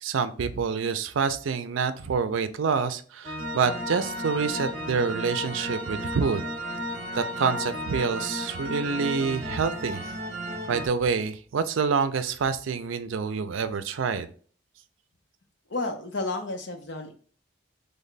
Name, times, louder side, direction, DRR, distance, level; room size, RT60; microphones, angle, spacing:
voice 1, 0.0-6.4 7.1-10.0 10.7-14.3, right 5 dB, 85° right, 11 dB, 0.4 m, -27 dB
sound 1, 3.2-10.9, equal, 35° right, 0.8 m, -33 dB
voice 2, 15.7-17.1, left 2 dB, 65° left, 4 dB, 0.7 m, -31 dB
3.4 x 2.2 x 3.9 m, 0.43 s
head